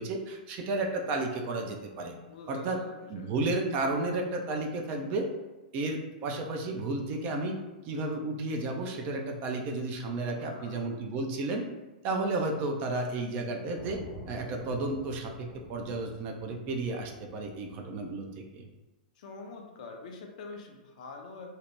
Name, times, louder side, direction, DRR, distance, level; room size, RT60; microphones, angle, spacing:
voice 1, 0.0-2.2 2.5-2.8 3.1-5.3 5.7-7.5 7.8-11.6 12.0-14.0 14.3-18.3 18.5-18.7, right 2 dB, 35° right, 2 dB, 0.4 m, -32 dB
voice 2, 2.3-3.3 10.1-10.9 19.2-21.5, left 3 dB, 55° left, 2 dB, 0.5 m, -45 dB
sound 1, 13.8-18.6, equal, 10° left, 0.6 m, -49 dB
2.7 x 2.0 x 3.2 m, 1.1 s
figure-of-eight pair, 105°, 5 cm